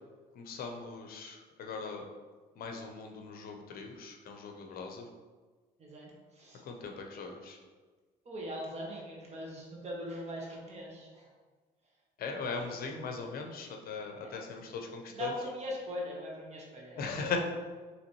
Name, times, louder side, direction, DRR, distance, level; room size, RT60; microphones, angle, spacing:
voice 1, 0.3-2.0 2.6-5.1 6.7-7.6 12.2-15.3 17.0-17.4, left 5 dB, 60° left, 3 dB, 0.7 m, -39 dB
voice 2, 5.8-6.6 8.2-11.3 12.7-13.1 14.2-14.3 15.1-17.1, equal, 40° right, -2 dB, 1.4 m, -41 dB
5.6 x 3.1 x 3.0 m, 1.4 s
cardioid pair, 110°, 17 cm